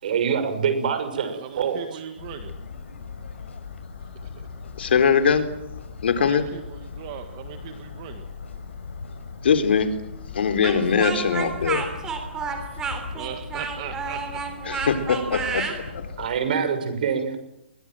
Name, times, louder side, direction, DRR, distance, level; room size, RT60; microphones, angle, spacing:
voice 1, 0.0-2.0 16.2-17.4, right 6 dB, 45° right, 9 dB, 6.5 m, -25 dB
voice 2, 1.3-2.5 6.2-8.3 13.1-14.4, right 10 dB, 30° right, 7 dB, 1.7 m, -38 dB
sound 1, 2.2-16.3, left 5 dB, 75° left, 7.1 m, -39 dB
voice 3, 4.8-5.5 6.0-6.4 9.4-9.9 10.3-11.8 14.7-15.7, left 6 dB, 60° left, 9 dB, 4.1 m, -21 dB
Speech, 10.6-15.8, right 5 dB, 10° right, 3.4 m, -30 dB
29.5 x 23.5 x 7.8 m, 0.83 s
hypercardioid pair, 175°, 6 cm